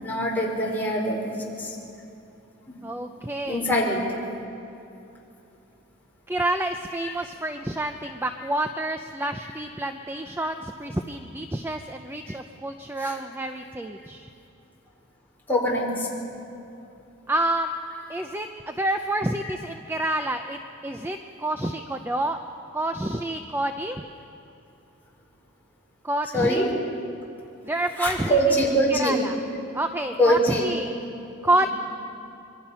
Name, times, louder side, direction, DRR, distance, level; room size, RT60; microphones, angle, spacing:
voice 1, 0.0-1.8 2.7-2.8 3.4-4.2 7.0-7.1 9.4-9.5 12.3-12.4 13.0-13.2 15.5-16.1 18.1-18.2 19.4-19.5 26.3-26.7 28.0-29.2 30.2-30.7 31.6-31.7, equal, 10° left, -4 dB, 4.6 m, -24 dB
voice 2, 2.8-3.6 6.3-14.3 17.3-17.8 18.1-20.6 20.8-22.4 22.7-24.0 26.0-26.7 27.6-28.4 28.9-29.4 29.7-30.9 31.4-31.7, right 1 dB, 10° right, 6 dB, 0.6 m, -28 dB
26.5 x 23.0 x 5.7 m, 2.8 s
head